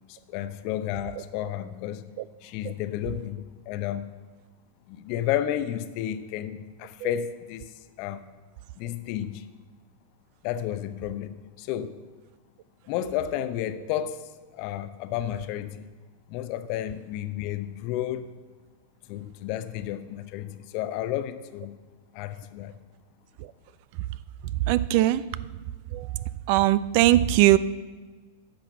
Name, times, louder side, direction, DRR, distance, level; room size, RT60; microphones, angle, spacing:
voice 1, 0.1-2.0 2.4-4.1 4.9-8.2 8.8-9.5 10.4-12.0 12.9-15.9 16.3-18.3 19.1-21.8 22.1-22.8, left 11 dB, 50° left, 12 dB, 0.7 m, -32 dB
voice 2, 24.7-25.2 25.9-26.1 26.5-27.6, right 15 dB, 55° right, 17 dB, 0.4 m, -20 dB
10.5 x 6.3 x 7.2 m, 1.3 s
hypercardioid pair, 105°, 0 cm